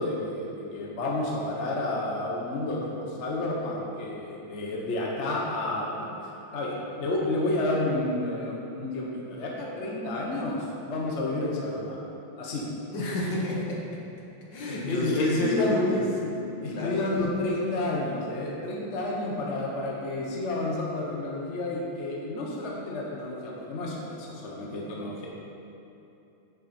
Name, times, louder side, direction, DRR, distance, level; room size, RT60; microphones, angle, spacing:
voice 1, 0.0-5.9 6.2-12.0 12.4-12.7 14.7-15.8 16.6-25.3, left 2 dB, 40° left, -3 dB, 1.1 m, -30 dB
voice 2, 12.9-13.8 14.5-17.2, left 1 dB, 60° left, -3 dB, 1.9 m, -29 dB
9.3 x 6.9 x 4.4 m, 2.9 s
omnidirectional pair, 2.3 m